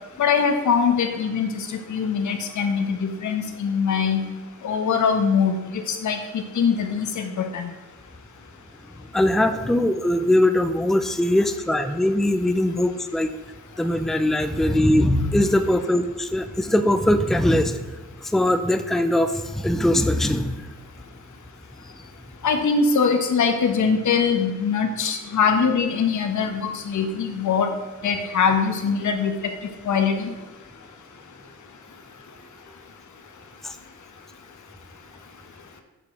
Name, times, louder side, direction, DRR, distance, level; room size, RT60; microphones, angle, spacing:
voice 1, 0.2-4.2 4.6-7.7 22.4-27.7 28.0-29.3 29.8-30.3, left 6 dB, 80° left, 6 dB, 1.3 m, -22 dB
voice 2, 9.1-13.3 13.8-17.8 18.2-20.6 33.6-33.8, left 1 dB, ahead, 9 dB, 0.5 m, -21 dB
7.1 x 6.6 x 6.1 m, 1.2 s
wide cardioid pair, 110°, 29 cm